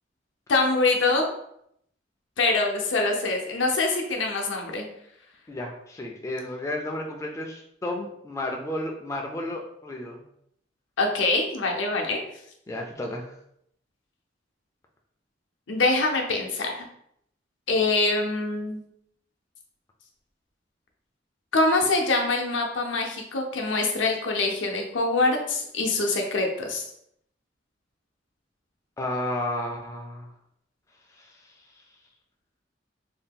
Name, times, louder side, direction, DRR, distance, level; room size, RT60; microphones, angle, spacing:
voice 1, 0.5-1.2 2.4-4.9 11.0-12.2 15.7-16.8 17.7-18.8 21.5-26.8, left 3 dB, 80° left, 1 dB, 0.6 m, -24 dB
voice 2, 5.5-10.2 12.7-13.3 29.0-30.3 31.2-31.3, left 1 dB, 15° left, 1 dB, 0.3 m, -32 dB
2.7 x 2.2 x 3.5 m, 0.73 s
head